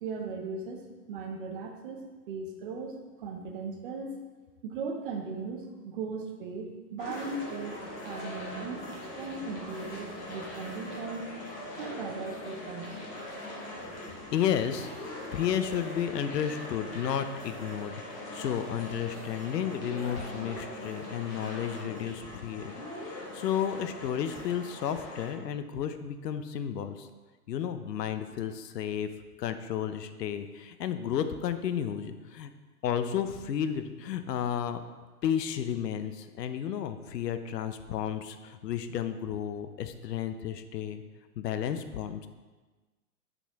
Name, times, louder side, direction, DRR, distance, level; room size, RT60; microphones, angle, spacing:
voice 1, 0.0-4.1 4.6-8.8 9.1-11.3 11.7-12.9 13.5-13.6, right 4 dB, 35° right, 3 dB, 0.7 m, -38 dB
sound 1, 7.0-25.3, left 1 dB, 30° left, 1.5 m, -41 dB
voice 2, 14.3-14.9 15.3-27.1 27.5-29.1 29.4-32.5 32.8-34.8 35.2-41.0 41.4-42.3, left 9 dB, 85° left, 10 dB, 0.7 m, -32 dB
8.9 x 4.1 x 3.5 m, 1.3 s
hypercardioid pair, 155°, 48 cm